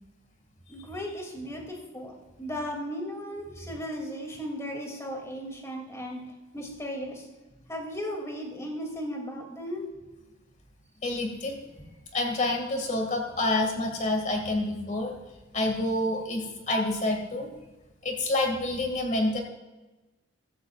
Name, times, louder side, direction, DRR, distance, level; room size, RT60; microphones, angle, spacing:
voice 1, 0.7-2.1 2.4-6.2 6.5-7.3 7.7-9.9, equal, 15° left, 1 dB, 2.6 m, -36 dB
voice 2, 11.0-11.6 12.1-15.1 15.5-17.5 18.0-19.4, left 2 dB, 35° left, 3 dB, 2.1 m, -28 dB
15.0 x 13.5 x 2.4 m, 1.1 s
head